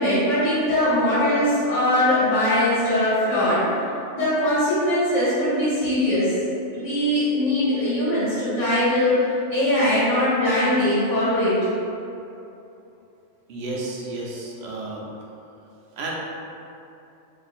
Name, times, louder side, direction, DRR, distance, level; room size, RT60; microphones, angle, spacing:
voice 1, 0.0-3.6 4.1-6.3 6.7-9.2 9.5-11.6, left 1 dB, 85° left, -11 dB, 1.4 m, -21 dB
voice 2, 13.5-15.0 16.0-16.1, right 2 dB, 65° right, -3 dB, 0.8 m, -32 dB
2.6 x 2.5 x 4.2 m, 2.7 s
omnidirectional pair, 1.2 m